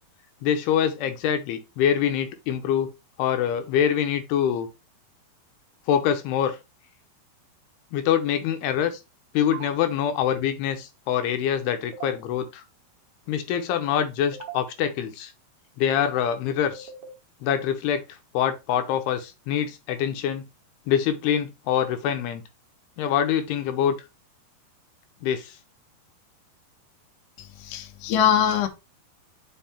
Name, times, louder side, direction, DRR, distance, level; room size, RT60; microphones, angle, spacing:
voice 1, 0.4-2.9 3.2-4.7 5.9-6.6 7.9-9.0 9.3-12.6 13.3-15.3 15.8-16.9 17.4-18.0 18.3-20.4 20.9-22.4 23.0-23.9 25.2-25.5, left 9 dB, 85° left, 2.7 m, -25 dB
sound 1, 9.5-9.7 11.9-12.1 14.3-14.6 16.7-17.1, right 8 dB, 85° right, 1.3 m, -38 dB
voice 2, 27.4-28.7, left 9 dB, 70° left, 2.2 m, -23 dB
5.6 x 4.9 x 4.2 m
omnidirectional pair, 4.7 m